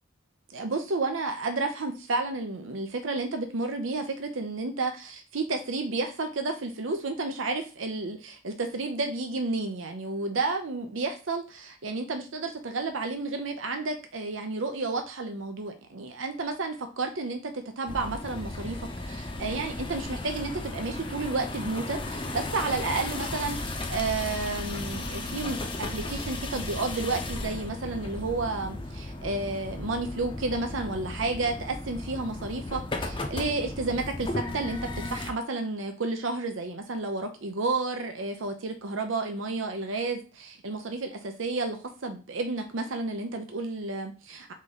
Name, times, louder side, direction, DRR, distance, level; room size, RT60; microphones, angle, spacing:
voice 1, 0.5-18.8 19.0-34.8 35.1-44.5, right 3 dB, 80° right, 5 dB, 0.7 m, -31 dB
sound 1, 17.9-35.3, left 2 dB, 25° left, 0.6 m, -35 dB
3.8 x 3.2 x 3.9 m, 0.33 s
head